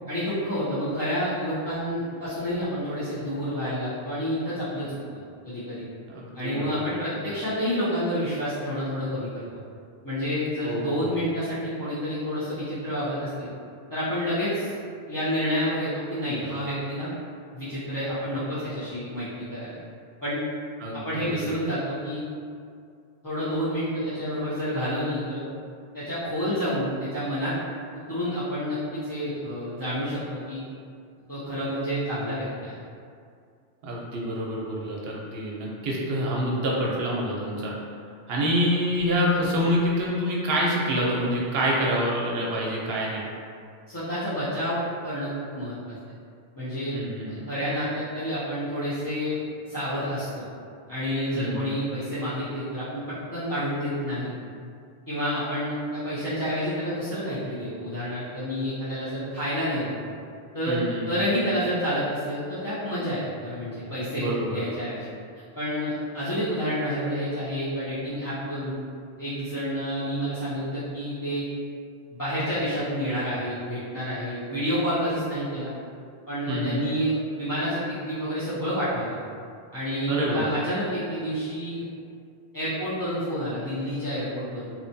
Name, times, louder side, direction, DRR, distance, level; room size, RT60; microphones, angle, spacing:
voice 1, 0.1-5.0 5.4-5.8 6.3-9.4 10.0-13.5 13.9-14.8 15.1-17.1 17.5-19.8 20.2-20.4 21.0-22.2 23.2-25.4 25.9-27.5 28.1-30.6 31.3-32.7 43.9-45.9 46.6-46.9 47.3-49.4 49.7-50.4 50.9-54.3 55.1-59.9 60.5-65.1 65.5-68.7 69.2-71.4 72.1-75.7 76.3-79.1 79.7-81.9 82.5-84.7, equal, 30° left, -13 dB, 0.4 m, -29 dB
voice 2, 6.1-7.4 10.6-11.3 20.8-21.6 33.8-37.7 38.3-43.3 46.9-47.4 51.3-51.7 60.7-61.0 64.1-64.7 76.5-76.9 80.1-80.4, equal, 70° right, -4 dB, 0.8 m, -27 dB
2.9 x 2.1 x 2.6 m, 2.3 s
omnidirectional pair, 1.1 m